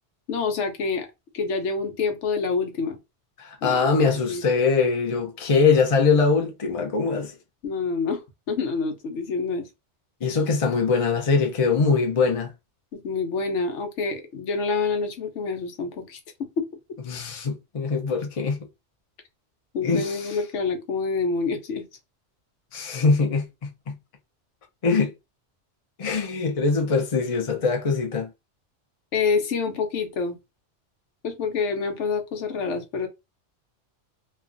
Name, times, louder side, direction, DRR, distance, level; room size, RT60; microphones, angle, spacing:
voice 1, 0.3-1.1 1.3-3.0 3.6-3.8 4.3-4.4 7.6-9.7 12.9-16.7 19.7-21.9 29.1-30.4 31.2-33.1, left 4 dB, 80° left, 1.1 m, -27 dB
voice 2, 3.4-7.3 10.2-12.5 17.1-18.6 19.8-20.4 22.7-24.0 24.8-25.1 26.0-28.3, left 4 dB, 35° left, 0.6 m, -22 dB
3.1 x 2.3 x 2.5 m
omnidirectional pair, 1.2 m